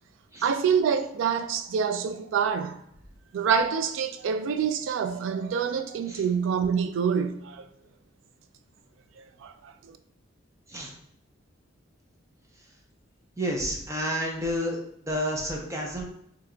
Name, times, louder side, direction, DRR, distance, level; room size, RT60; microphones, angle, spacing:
voice 1, 0.4-2.8 3.3-7.6 9.2-10.0, right 6 dB, 85° right, 0.3 m, -26 dB
voice 2, 13.4-14.8 15.1-16.0, equal, 15° right, 0.5 m, -30 dB
2.8 x 2.2 x 3.7 m
head